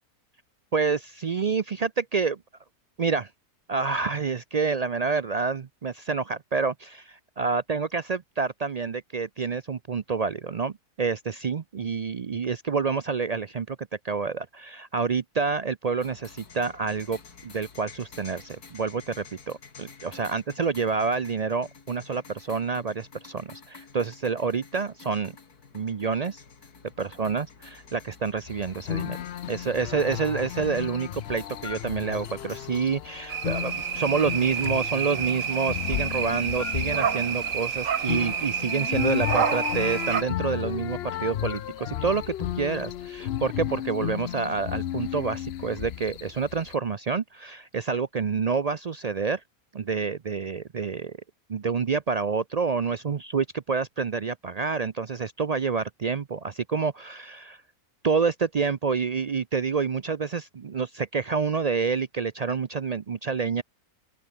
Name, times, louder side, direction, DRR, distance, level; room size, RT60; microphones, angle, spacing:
voice 1, 0.7-2.4 3.0-3.3 3.7-25.3 25.7-26.4 27.0-29.2 29.5-49.4 49.7-51.1 51.5-57.6 58.0-63.6, right 5 dB, 75° right, 0.3 m, -28 dB
sound 1, 16.0-32.9, left 5 dB, 85° left, 2.9 m, -50 dB
sound 2, 28.5-46.7, left 11 dB, 65° left, 0.6 m, -33 dB
sound 3, 33.3-40.2, right 7 dB, 60° right, 1.6 m, -29 dB
open air
omnidirectional pair, 1.6 m